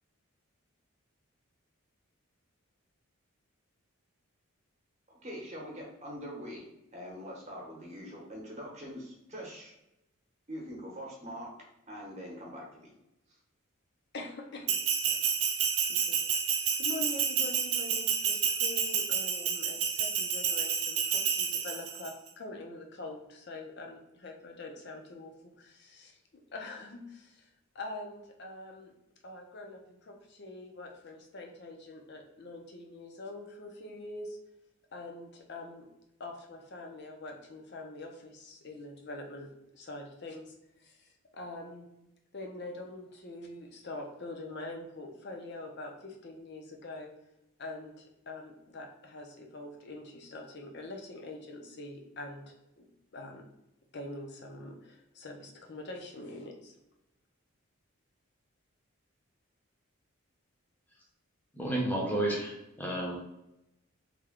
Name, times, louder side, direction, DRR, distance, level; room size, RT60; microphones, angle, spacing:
voice 1, 5.1-6.7 6.9-9.7 10.5-11.5 11.9-12.9 13.3-13.4, equal, 30° right, -2 dB, 0.9 m, -43 dB
voice 2, 14.1-15.2 15.5-26.1 26.5-27.5 27.7-28.9 29.2-34.4 34.9-35.9 36.2-40.6 40.8-41.9 42.3-47.1 47.6-52.9 53.1-53.4 53.9-56.7, left 2 dB, 50° left, 2 dB, 0.5 m, -44 dB
Bell, 14.7-22.1, right 7 dB, 75° right, 0.4 m, -30 dB
voice 3, 61.5-63.2, right 1 dB, 10° left, -3 dB, 0.7 m, -31 dB
3.3 x 2.2 x 3.6 m, 0.89 s
head